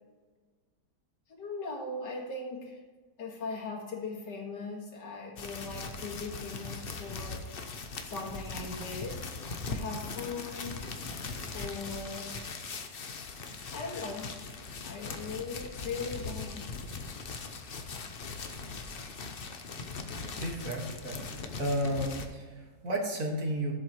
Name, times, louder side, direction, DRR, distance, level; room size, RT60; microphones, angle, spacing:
voice 1, 1.3-2.8 3.2-7.4 8.0-9.2 9.6-10.7 11.5-12.3 13.7-14.3 14.8-16.7, left 3 dB, 70° left, -1 dB, 2.4 m, -39 dB
sound 1, 5.4-22.3, left 4 dB, 50° left, 0.7 m, -40 dB
voice 2, 20.2-21.2 21.6-23.7, right 1 dB, 50° right, 1 dB, 2.2 m, -33 dB
15.0 x 7.8 x 3.1 m, 1.4 s
omnidirectional pair, 1.9 m